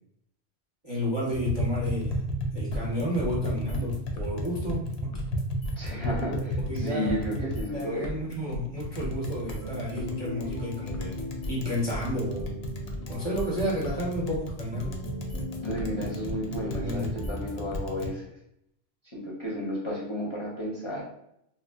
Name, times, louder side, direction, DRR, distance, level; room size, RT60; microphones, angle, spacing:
voice 1, 0.8-2.2 2.5-5.1 5.9-7.2 7.7-11.2 11.5-12.5 13.1-15.0 16.7-17.1, equal, 30° right, -5 dB, 0.5 m, -31 dB
Tap, 1.3-18.1, equal, 65° left, 0.3 m, -34 dB
sound 1, 2.7-18.0, left 2 dB, 80° left, 0.9 m, -38 dB
voice 2, 5.8-8.1 15.6-18.2 19.1-21.0, equal, 30° left, -5 dB, 0.6 m, -33 dB
sound 2, 8.7-18.0, left 1 dB, 15° left, 0.9 m, -40 dB
2.8 x 2.0 x 3.4 m, 0.76 s
omnidirectional pair, 1.2 m